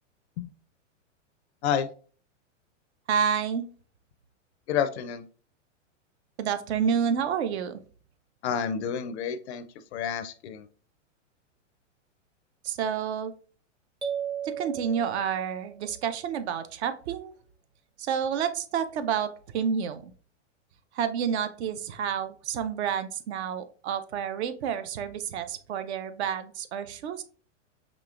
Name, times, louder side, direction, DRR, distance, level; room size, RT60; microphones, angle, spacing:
voice 1, 3.1-3.6 6.4-7.8 12.6-13.3 14.4-17.3 18.0-20.1 20.9-27.2, right 7 dB, 60° right, 11 dB, 0.6 m, -29 dB
voice 2, 4.7-5.2 8.4-9.6 9.9-10.7, left 8 dB, 60° left, 12 dB, 0.5 m, -29 dB
sound 1, 14.0-15.9, right 8 dB, 10° right, 0.5 m, -35 dB
5.1 x 3.0 x 2.4 m, 0.41 s
hypercardioid pair, 130°, 37 cm